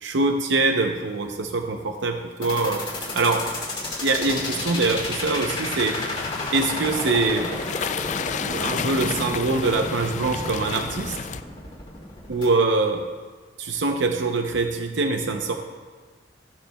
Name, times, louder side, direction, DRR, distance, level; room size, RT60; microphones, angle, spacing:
voice 1, 0.0-2.9 3.1-3.5 4.0-6.0 6.5-7.5 8.5-11.2 12.3-13.1 13.6-15.6, right 3 dB, 80° right, 4 dB, 0.7 m, -24 dB
sound 1, 2.4-12.4, left 2 dB, 25° left, 2.1 m, -32 dB
sound 2, 4.2-11.4, left 6 dB, 40° left, 0.3 m, -32 dB
14.5 x 11.5 x 2.3 m, 1.4 s
head